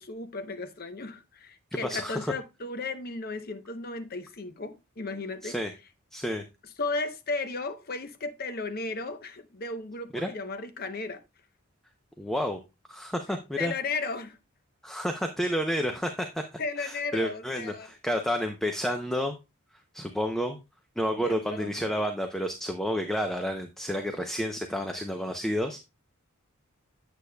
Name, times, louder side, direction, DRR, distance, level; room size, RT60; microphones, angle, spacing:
voice 1, 0.0-5.5 6.8-11.2 13.6-14.4 16.6-17.9 21.2-22.0, left 3 dB, 45° left, 0.8 m, -35 dB
voice 2, 1.8-2.3 5.4-5.7 6.1-6.5 10.1-10.3 12.2-12.6 12.9-13.7 14.8-19.3 19.9-20.6 21.0-25.8, equal, ahead, 0.6 m, -30 dB
8.4 x 8.1 x 2.2 m
head